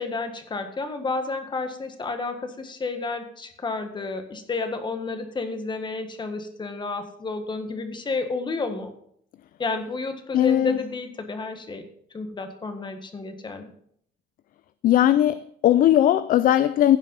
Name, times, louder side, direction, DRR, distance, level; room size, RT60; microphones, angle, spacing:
voice 1, 0.0-8.9 9.6-11.8 12.1-13.7, left 3 dB, 25° left, 1.7 m, -31 dB
voice 2, 10.3-10.8 14.8-17.0, left 12 dB, 55° left, 0.5 m, -19 dB
15.5 x 5.4 x 5.7 m
cardioid pair, 110°, 17 cm